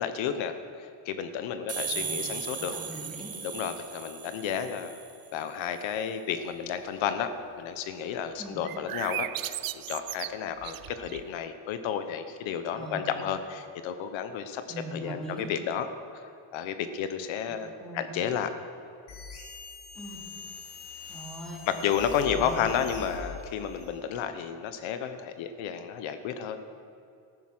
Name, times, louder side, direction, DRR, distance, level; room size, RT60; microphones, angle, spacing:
voice 1, 0.0-2.7 3.4-5.0 5.3-7.3 7.6-14.6 14.9-15.9 16.5-18.5 21.7-26.6, left 8 dB, 85° left, 9 dB, 1.1 m, -32 dB
sound 1, 1.7-5.3, right 5 dB, 30° right, 1.1 m, -37 dB
voice 2, 1.9-3.3 8.4-8.6 12.7-13.2 14.7-15.4 17.5-18.1 19.9-20.2 21.1-21.6 22.2-22.5, right 2 dB, ahead, -4 dB, 3.7 m, -42 dB
sound 2, 8.6-11.4, right 14 dB, 50° right, 0.5 m, -36 dB
sound 3, 19.1-24.0, left 4 dB, 60° left, 3.6 m, -43 dB
14.5 x 11.0 x 6.1 m, 2.5 s
cardioid pair, 120°, 45 cm